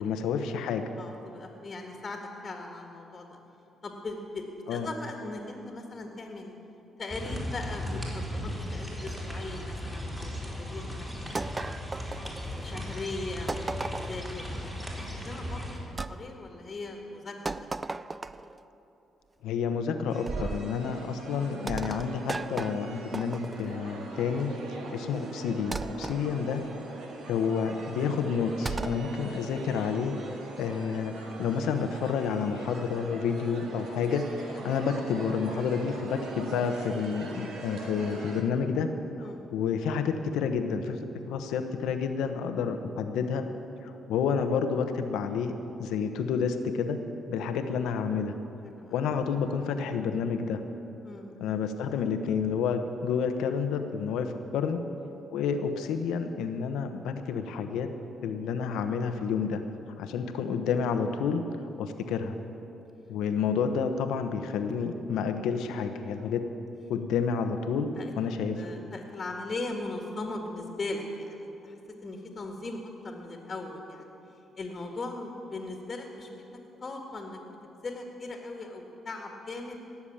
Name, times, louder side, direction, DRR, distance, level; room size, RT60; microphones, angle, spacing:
voice 1, 0.0-0.8 4.7-4.9 19.4-24.5 24.9-26.6 27.3-30.2 30.6-38.9 39.2-41.0 41.3-43.4 43.8-45.5 45.8-47.0 47.3-48.3 48.9-50.6 51.4-54.8 55.3-57.9 58.2-59.6 60.0-61.4 61.8-62.4 63.1-66.5 66.9-68.7, left 6 dB, 85° left, 7 dB, 1.0 m, -29 dB
voice 2, 1.0-3.3 3.8-6.6 7.0-11.9 12.5-13.7 14.1-14.8 15.1-15.7 16.1-17.6 39.2-39.5 47.6-47.7 48.6-49.0 51.0-51.4 55.1-55.3 66.2-66.3 68.0-68.1 68.6-74.1 74.6-76.4 76.8-77.4 77.8-79.8, left 2 dB, 35° left, 2 dB, 1.9 m, -39 dB
sound 1, 7.1-15.8, left 1 dB, 5° right, 3.7 m, -36 dB
sound 2, 11.4-12.8 13.5-14.3 16.0-16.2 17.5-18.6 20.3-20.7 21.7-23.8 25.7-26.2 28.7-29.0, right 3 dB, 25° right, 0.4 m, -35 dB
sound 3, 20.1-38.4, right 3 dB, 75° right, 2.1 m, -41 dB
18.0 x 7.2 x 8.8 m, 2.9 s
cardioid pair, 90°, 0 cm